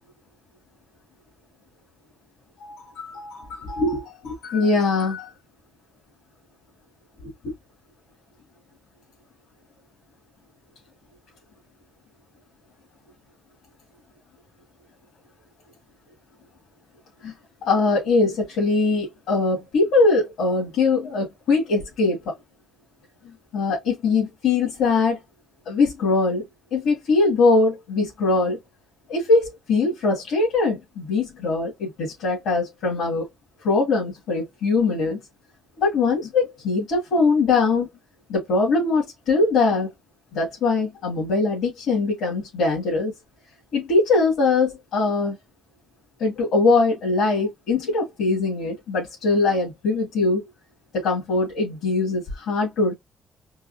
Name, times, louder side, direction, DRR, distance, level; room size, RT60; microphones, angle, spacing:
voice 1, 2.6-5.3 7.2-7.5 17.2-17.3 17.6-22.3 23.5-25.2 25.7-26.4 26.7-28.6 29.1-33.3 33.6-35.2 35.8-37.9 38.3-39.9 40.3-43.1 43.7-45.4 46.2-50.4 50.9-52.9, left 3 dB, 85° left, 2.4 m, -22 dB
4.6 x 2.9 x 2.8 m
cardioid pair, 90°, 0 cm